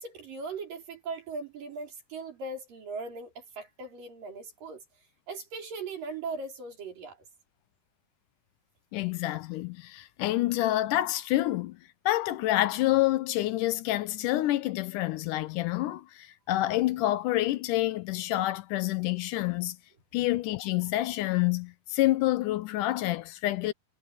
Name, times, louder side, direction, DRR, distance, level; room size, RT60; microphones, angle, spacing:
voice 1, 0.0-4.8 5.3-7.2, right 3 dB, 75° right, 6.6 m, -39 dB
voice 2, 8.9-11.8 12.1-19.8 20.1-23.7, left 16 dB, 80° left, 2.1 m, -28 dB
omnidirectional pair, 3.9 m